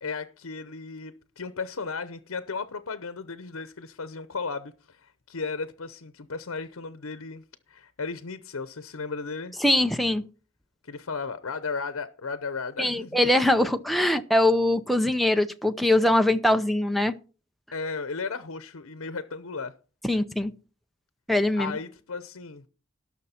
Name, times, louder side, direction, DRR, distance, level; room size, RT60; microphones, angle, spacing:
voice 1, 0.0-9.6 10.8-13.2 17.7-19.7 21.6-22.7, left 4 dB, 85° left, 0.8 m, -35 dB
voice 2, 9.6-10.2 12.8-17.2 20.0-20.5 21.3-21.7, left 1 dB, ahead, 0.6 m, -22 dB
18.5 x 6.4 x 4.3 m
head